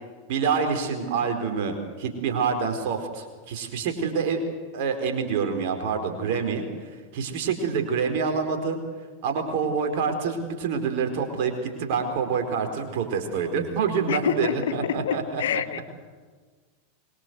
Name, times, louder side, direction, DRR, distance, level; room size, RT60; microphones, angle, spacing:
voice 1, 0.3-4.4 4.7-8.8 9.2-15.6, right 5 dB, 50° right, 5 dB, 4.5 m, -27 dB
voice 2, 14.1-14.5 14.8-15.1 15.4-15.8, left 9 dB, 60° left, 13 dB, 1.2 m, -26 dB
25.5 x 22.5 x 8.1 m, 1.4 s
figure-of-eight pair, 90°, 0 cm